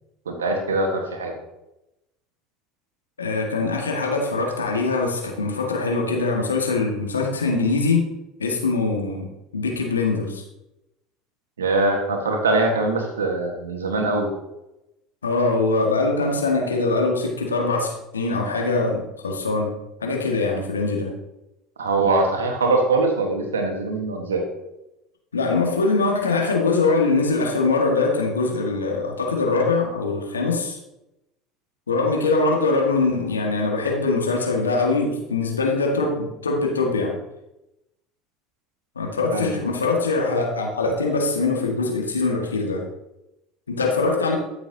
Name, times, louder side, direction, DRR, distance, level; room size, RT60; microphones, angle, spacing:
voice 1, 0.2-1.3 11.6-14.3 21.8-24.4 39.3-39.9, right 2 dB, 85° right, 3 dB, 1.4 m, -22 dB
voice 2, 3.2-8.0 8.4-10.4 15.2-21.1 25.3-30.8 31.9-37.1 38.9-42.8 43.7-44.3, left 3 dB, 90° left, 0 dB, 1.6 m, -22 dB
13.0 x 6.9 x 2.8 m, 0.92 s
hypercardioid pair, 75°, 0 cm